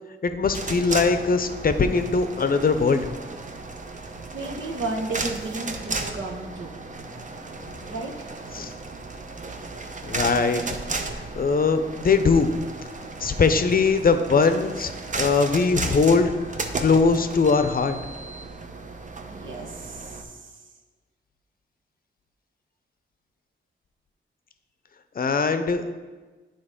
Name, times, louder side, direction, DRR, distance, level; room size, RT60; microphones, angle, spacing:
voice 1, 0.2-3.1 8.5-8.7 10.0-10.6 11.4-12.5 13.2-14.9 15.2-16.3 16.8-18.0 25.2-25.9, left 4 dB, 50° left, 9 dB, 0.6 m, -21 dB
sound 1, 0.5-20.2, right 3 dB, 40° right, 0.7 m, -34 dB
voice 2, 4.3-6.7 7.8-8.3 19.3-20.1, right 2 dB, 75° right, 1 dB, 1.2 m, -33 dB
8.8 x 3.9 x 5.1 m, 1.3 s
cardioid pair, 70°, 20 cm